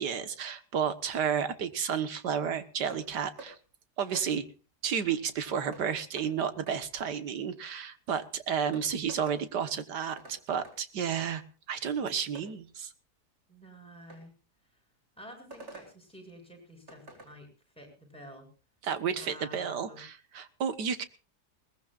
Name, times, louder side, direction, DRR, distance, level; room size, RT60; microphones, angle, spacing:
voice 1, 0.0-3.6 4.0-4.4 4.8-11.4 11.7-12.9 18.8-21.0, right 7 dB, 90° right, 11 dB, 2.0 m, -32 dB
sound 1, 2.9-3.1 3.4-3.5 4.1-4.3 5.7-5.9 6.2-6.3 6.7-6.8 8.2-8.3 8.7-9.4 10.2-10.4 10.6-10.8 12.3-12.5 14.1-14.2 15.5-15.9 16.9-17.3, right 3 dB, 60° right, 4.7 m, -47 dB
voice 2, 13.5-14.3 15.2-17.5 17.8-18.5 19.1-20.0, equal, 5° left, 2 dB, 7.1 m, -49 dB
21.5 x 19.5 x 2.5 m, 0.35 s
omnidirectional pair, 1.7 m